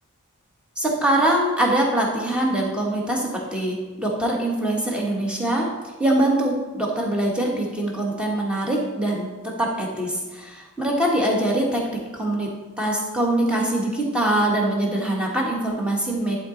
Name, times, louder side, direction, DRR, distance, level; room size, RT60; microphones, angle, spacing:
voice 1, 0.8-9.3 9.6-11.8 12.1-12.5 12.8-16.4, right 1 dB, 5° right, -2 dB, 1.2 m, -23 dB
11.0 x 4.0 x 3.8 m, 1.2 s
head